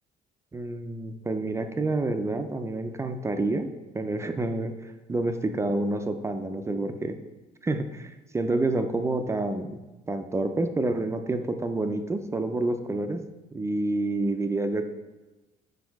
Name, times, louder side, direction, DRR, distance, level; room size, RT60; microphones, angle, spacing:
voice 1, 0.5-3.7 3.9-7.2 7.6-9.8 10.1-13.2 13.5-14.9, right 2 dB, 15° right, 7 dB, 0.4 m, -28 dB
4.8 x 4.3 x 4.6 m, 1.1 s
cardioid pair, 110°, 17 cm